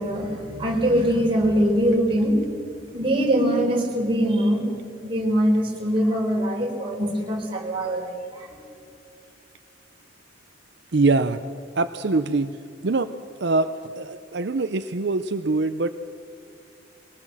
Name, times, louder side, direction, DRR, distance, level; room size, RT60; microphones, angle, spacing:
voice 1, 0.0-2.4 2.9-4.6 5.0-8.5, equal, 30° right, -1 dB, 4.3 m, -22 dB
voice 2, 10.9-11.4 11.8-12.6 12.8-13.1 13.4-13.7 14.0-15.9, right 3 dB, 65° right, 9 dB, 0.6 m, -23 dB
22.5 x 18.5 x 7.3 m, 2.5 s
head